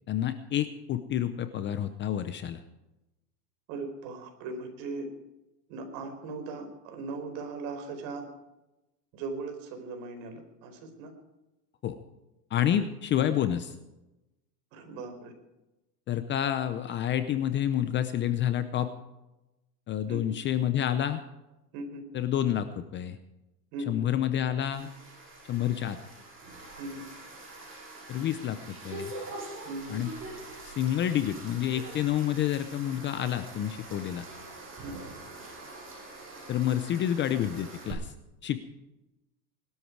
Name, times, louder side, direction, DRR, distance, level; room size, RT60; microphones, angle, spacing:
voice 1, 0.1-2.6 11.8-12.0 12.5-13.8 16.1-18.9 19.9-21.2 22.1-23.2 23.9-24.9 25.4-26.0 28.1-28.6 28.8-29.1 29.9-30.1 30.6-34.3 36.5-38.1 38.4-38.6, left 11 dB, 25° left, 10 dB, 0.7 m, -29 dB
voice 2, 3.7-5.1 5.7-8.3 9.1-11.1 12.8-12.9 14.7-15.3 20.1-20.4 21.7-22.0 23.7-24.1 26.8-27.1 29.6-30.0 34.8-35.0, right 3 dB, 50° right, 6 dB, 4.8 m, -38 dB
sound 1, 24.7-37.9, right 2 dB, 25° right, 7.8 m, -44 dB
20.5 x 13.0 x 4.7 m, 0.98 s
supercardioid pair, 145°, 49 cm